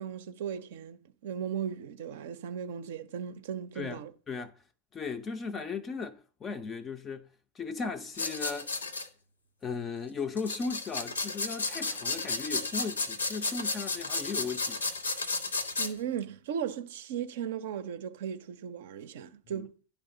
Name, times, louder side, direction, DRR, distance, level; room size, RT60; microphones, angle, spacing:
voice 1, 0.0-4.1 15.8-19.9, right 8 dB, 55° right, 0.5 m, -37 dB
voice 2, 4.9-7.3 7.6-8.7 9.6-14.8 19.5-19.7, left 4 dB, 20° left, 0.4 m, -36 dB
sound 1, 8.1-9.1 10.4-15.9, left 3 dB, 75° left, 0.6 m, -33 dB
10.0 x 3.5 x 3.7 m
figure-of-eight pair, 90°, 0 cm